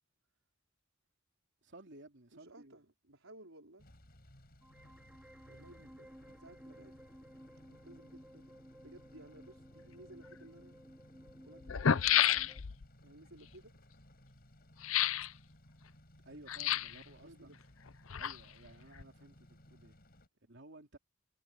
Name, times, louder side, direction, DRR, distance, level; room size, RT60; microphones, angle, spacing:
voice 1, 1.6-2.8 16.2-17.6 18.2-19.9 20.4-21.0, right 2 dB, 60° right, 3.1 m, -55 dB
voice 2, 2.3-3.9 4.8-4.9 5.5-7.0 7.7-10.8 11.4-11.9 13.0-13.8 16.5-16.8 17.2-17.6, right 1 dB, 85° right, 4.7 m, -58 dB
sound 1, 3.8-20.3, left 1 dB, 50° left, 6.8 m, -60 dB
sound 2, 4.6-12.6, equal, 5° right, 3.5 m, -57 dB
sound 3, 10.3-10.4 11.3-11.4 11.6-12.9 14.8-15.3 16.5-17.0 17.9-18.7 19.0-19.1, left 9 dB, 90° left, 0.7 m, -30 dB
head